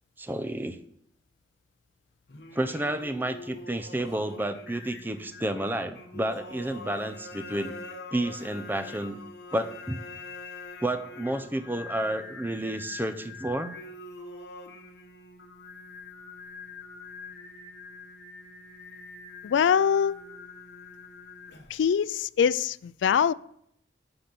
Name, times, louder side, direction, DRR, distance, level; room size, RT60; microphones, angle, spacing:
voice 1, 0.2-0.8 2.5-7.7 8.1-9.2 9.5-10.0 10.8-13.7, right 1 dB, 10° right, 0.5 m, -31 dB
Singing, 2.3-21.9, left 3 dB, 60° left, 1.2 m, -44 dB
voice 2, 19.4-20.3 21.7-23.3, left 7 dB, 85° left, 0.3 m, -23 dB
11.5 x 4.0 x 6.8 m
head